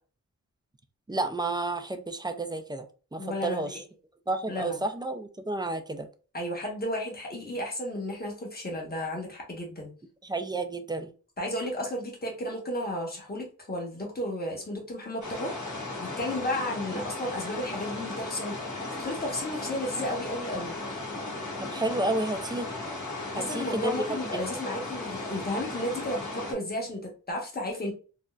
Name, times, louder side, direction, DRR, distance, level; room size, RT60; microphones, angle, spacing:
voice 1, 1.1-2.9 3.1-3.8 4.3-6.1 10.2-11.1 21.6-22.7 23.3-24.2, right 2 dB, 15° right, 0.4 m, -31 dB
voice 2, 3.2-3.7 4.5-4.8 6.3-9.9 11.4-15.5 16.0-18.6 19.0-20.7 23.3-27.9, left 1 dB, 30° left, 1.1 m, -33 dB
sound 1, 15.2-26.5, left 2 dB, 60° left, 1.3 m, -36 dB
3.7 x 2.1 x 2.3 m
wide cardioid pair, 85°, 32 cm